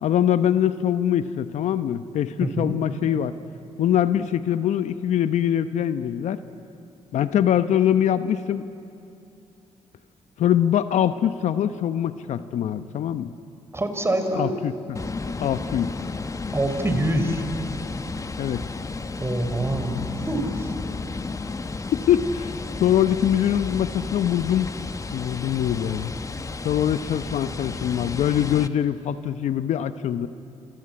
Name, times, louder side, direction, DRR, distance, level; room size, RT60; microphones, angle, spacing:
voice 1, 0.0-3.3 3.8-6.4 7.1-8.7 10.4-13.3 14.3-15.0 15.4-15.9 18.4-18.6 21.9-24.8 25.1-26.2 26.6-30.3, left 10 dB, 70° left, 12 dB, 0.9 m, -23 dB
voice 2, 2.4-2.7 13.7-14.5 16.5-17.4 19.2-20.0 20.3-20.7, right 1 dB, 20° right, 7 dB, 4.1 m, -25 dB
sound 1, 14.9-28.7, left 3 dB, 25° left, 1.1 m, -33 dB
27.0 x 25.0 x 8.8 m, 2.8 s
supercardioid pair, 70°, 12 cm